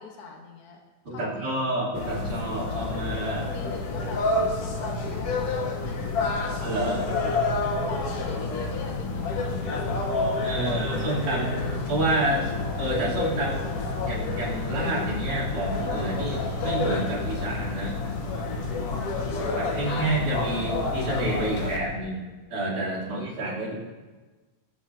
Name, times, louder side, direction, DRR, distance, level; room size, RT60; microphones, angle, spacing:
voice 1, 0.0-1.7 3.4-6.6 7.9-10.9 18.9-20.2 20.5-21.9 23.0-23.4, left 4 dB, 80° left, 1 dB, 0.8 m, -43 dB
voice 2, 1.0-3.5 6.6-7.1 10.4-13.6 14.0-18.0 19.6-23.7, right 2 dB, 75° right, -8 dB, 4.7 m, -29 dB
sound 1, 1.9-21.8, left 3 dB, 60° left, 1.8 m, -29 dB
20.5 x 8.9 x 2.8 m, 1.3 s
omnidirectional pair, 3.7 m